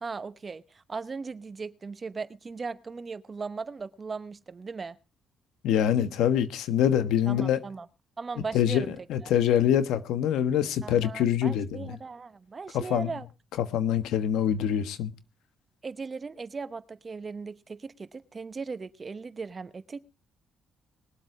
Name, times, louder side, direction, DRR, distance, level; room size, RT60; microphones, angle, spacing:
voice 1, 0.0-5.0 7.3-7.9 8.2-8.9 9.2-9.3 10.8-13.3 15.8-20.0, right 4 dB, 35° right, 0.9 m, -38 dB
voice 2, 5.6-7.6 8.5-12.0 12.7-13.1 13.6-15.1, left 10 dB, 85° left, 1.2 m, -25 dB
21.0 x 8.0 x 4.8 m
cardioid pair, 90°, 0 cm